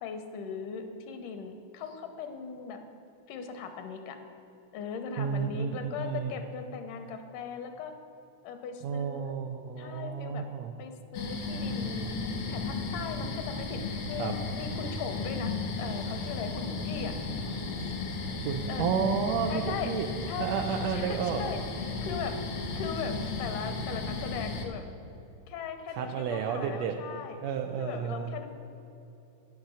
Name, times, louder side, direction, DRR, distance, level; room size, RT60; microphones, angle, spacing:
voice 1, 0.0-2.8 3.3-4.2 4.7-7.9 8.4-9.4 9.8-10.5 10.8-12.2 12.5-15.5 15.8-17.2 18.7-18.9 19.5-19.9 20.2-20.5 20.9-22.4 22.8-24.9 25.5-27.4 27.8-28.5, left 6 dB, 85° left, 6 dB, 2.3 m, -39 dB
voice 2, 5.2-6.4 8.8-10.7 14.2-14.3 18.4-20.1 20.4-21.4 25.9-27.0 27.4-28.3, right 7 dB, 85° right, 4 dB, 1.5 m, -31 dB
sound 1, 11.1-24.7, left 3 dB, 65° left, 1.2 m, -34 dB
9.2 x 7.2 x 6.2 m, 2.9 s
omnidirectional pair, 3.6 m